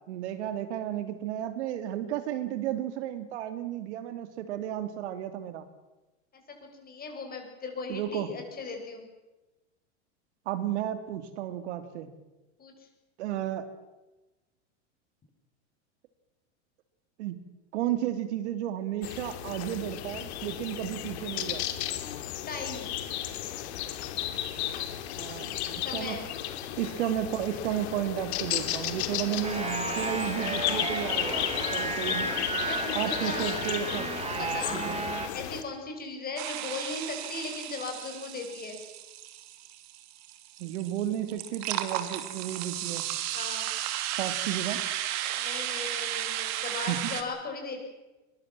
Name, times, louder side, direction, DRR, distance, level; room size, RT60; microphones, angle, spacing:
voice 1, 0.0-5.6 7.9-8.3 10.5-12.1 13.2-13.7 17.2-17.4 17.7-21.6 25.2-26.2 26.8-32.3 32.9-34.0 34.3-34.9 40.6-43.1 44.1-44.8 46.9-47.0, right 11 dB, 70° right, 10 dB, 2.7 m, -33 dB
voice 2, 6.8-9.1 12.6-12.7 22.5-22.9 25.8-26.2 32.6-33.5 34.4-34.8 35.3-38.8 43.3-43.7 45.4-47.8, left 3 dB, 25° left, 3 dB, 7.8 m, -37 dB
sound 1, 19.0-35.6, left 12 dB, 65° left, 2.9 m, -34 dB
sound 2, 29.4-35.3, right 4 dB, 15° right, 2.7 m, -33 dB
sound 3, 36.4-47.2, right 12 dB, 50° right, 2.7 m, -34 dB
22.5 x 21.5 x 7.6 m, 1.1 s
hypercardioid pair, 110°, 35 cm